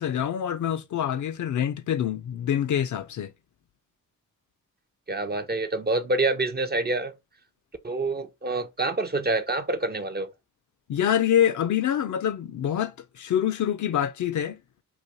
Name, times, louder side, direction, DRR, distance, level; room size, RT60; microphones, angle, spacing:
voice 1, 0.0-3.3 10.9-14.6, left 10 dB, 50° left, 0.5 m, -26 dB
voice 2, 5.1-7.1 7.8-10.3, right 2 dB, 25° right, 0.5 m, -27 dB
2.5 x 2.3 x 4.1 m
supercardioid pair, 40°, 38 cm